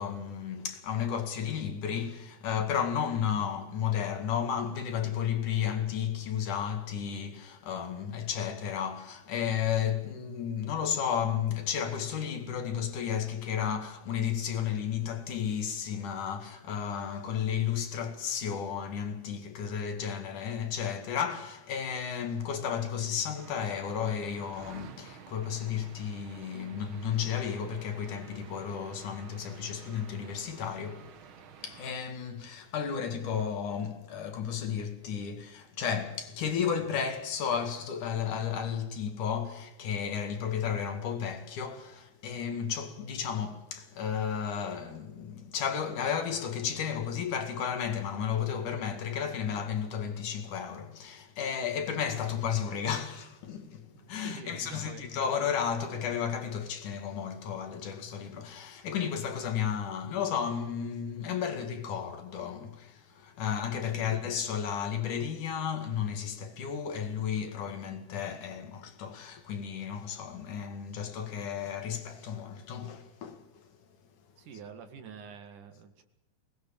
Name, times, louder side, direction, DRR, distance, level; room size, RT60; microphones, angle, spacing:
voice 1, 0.0-31.2 31.6-73.7, left 8 dB, 80° left, 3.6 m, -33 dB
sound 1, 23.3-31.9, right 8 dB, 55° right, 1.5 m, -51 dB
voice 2, 54.0-55.0 63.9-64.1 74.4-76.0, right 6 dB, 80° right, 3.4 m, -47 dB
23.0 x 19.5 x 7.2 m
omnidirectional pair, 3.5 m